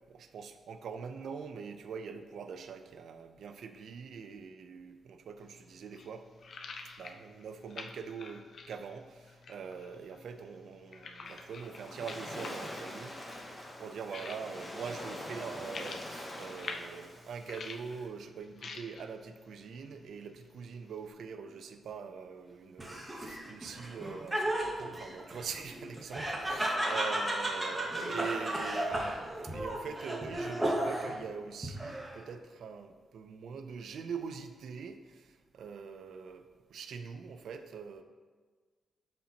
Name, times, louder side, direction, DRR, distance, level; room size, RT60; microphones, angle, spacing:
voice 1, 0.1-6.3 7.0-13.5 13.8-36.4 36.7-38.0, right 6 dB, 75° right, 8 dB, 0.5 m, -43 dB
sound 1, 5.4-21.1, left 4 dB, 50° left, 0.5 m, -49 dB
Waves surf, 11.3-18.1, left 1 dB, 20° left, 0.9 m, -44 dB
Laughter, 22.8-31.2 31.6-32.3, right 1 dB, 10° right, 1.0 m, -34 dB
12.0 x 4.3 x 2.8 m, 1.5 s
wide cardioid pair, 165°, 0 cm